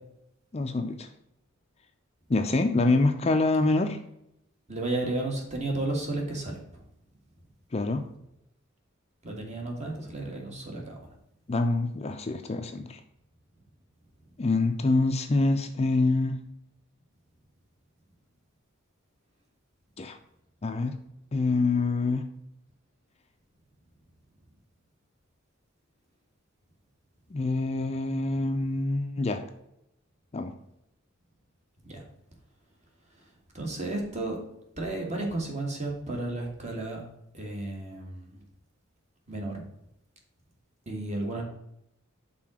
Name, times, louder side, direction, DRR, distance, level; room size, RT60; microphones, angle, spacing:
voice 1, 0.5-1.1 2.3-4.0 7.7-8.1 11.5-13.0 14.4-16.4 20.0-20.2 20.6-20.9 21.3-22.2 27.3-29.4 30.3-30.5, left 3 dB, 30° left, 6 dB, 0.5 m, -26 dB
voice 2, 4.7-6.8 9.2-11.1 31.8-32.0 33.5-34.4 34.8-37.0 37.3-38.4 39.3-39.6 40.8-41.4, right 2 dB, 35° right, 0 dB, 1.7 m, -33 dB
5.9 x 3.8 x 6.1 m, 0.80 s
head